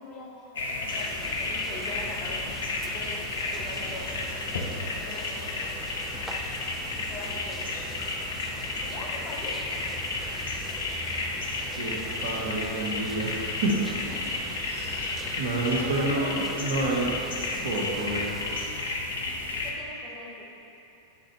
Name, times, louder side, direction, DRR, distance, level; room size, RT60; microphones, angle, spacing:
voice 1, 0.0-2.4 2.8-3.3 3.5-4.1 5.0-5.8 6.9-7.7 8.8-9.6 13.9-14.4 15.7-16.4 19.6-20.4, left 2 dB, 30° left, -3 dB, 1.1 m, -42 dB
sound 1, 0.6-19.7, left 2 dB, 65° left, 0.6 m, -32 dB
sound 2, 0.9-18.7, right 1 dB, 5° right, 0.4 m, -42 dB
voice 2, 11.8-13.9 14.7-14.9 15.4-17.1 17.6-18.4, right 2 dB, 65° right, -2 dB, 0.9 m, -28 dB
8.5 x 3.7 x 3.2 m, 2.8 s
figure-of-eight pair, 90°, 0 cm